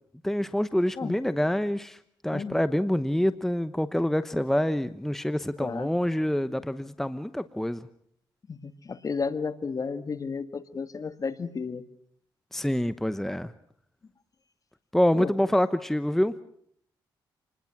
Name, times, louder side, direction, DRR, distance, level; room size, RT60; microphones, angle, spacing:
voice 1, 0.2-2.0 2.2-7.8 12.5-13.5 14.9-16.3, left 1 dB, 5° left, 12 dB, 1.0 m, -26 dB
voice 2, 5.6-5.9 8.5-11.8 15.1-15.3, left 5 dB, 45° left, 11 dB, 1.8 m, -33 dB
27.5 x 20.5 x 6.0 m, 0.66 s
cardioid pair, 75°, 9 cm